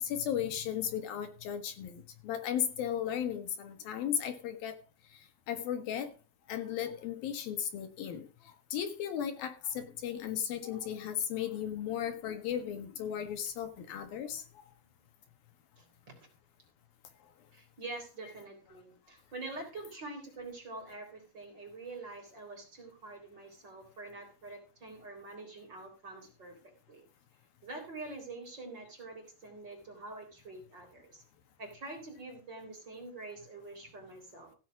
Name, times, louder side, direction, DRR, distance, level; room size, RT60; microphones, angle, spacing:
voice 1, 0.0-4.7 5.5-6.1 6.5-8.3 8.7-14.4, left 9 dB, 70° left, 3.3 m, -35 dB
voice 2, 15.8-16.1 17.5-26.6 26.9-27.0 27.6-31.2 31.6-34.5, right 2 dB, 30° right, 4.1 m, -46 dB
16.0 x 7.1 x 6.0 m
omnidirectional pair, 4.4 m